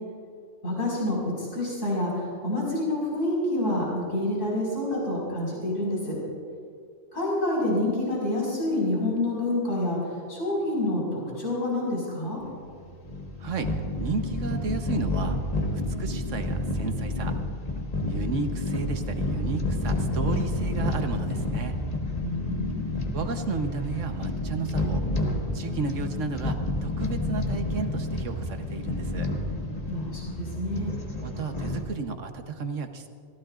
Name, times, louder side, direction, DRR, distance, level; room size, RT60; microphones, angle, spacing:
voice 1, 0.6-6.2 7.1-10.0 10.3-12.4 22.2-22.9 29.9-31.0, left 1 dB, 65° left, -5 dB, 5.5 m, -28 dB
sound 1, 12.4-31.8, left 1 dB, 30° left, 1.6 m, -30 dB
voice 2, 13.4-15.4 15.7-17.3 18.1-21.8 23.1-25.0 25.5-29.3 31.2-33.1, right 4 dB, 65° right, 6 dB, 1.3 m, -33 dB
27.0 x 16.0 x 2.5 m, 2.2 s
omnidirectional pair, 1.4 m